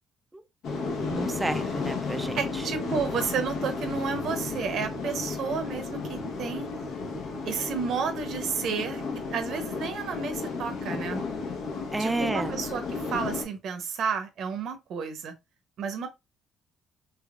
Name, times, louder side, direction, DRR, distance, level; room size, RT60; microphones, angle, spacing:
sound 1, 0.6-13.4, left 4 dB, 70° left, 0.9 m, -33 dB
voice 1, 1.1-2.6 11.9-12.5, right 2 dB, 15° right, 0.4 m, -31 dB
voice 2, 2.4-6.7 7.4-9.0 9.3-11.2 12.0-15.3 15.8-16.1, right 6 dB, 65° right, 0.8 m, -31 dB
3.5 x 3.1 x 2.4 m
cardioid pair, 95°, 0 cm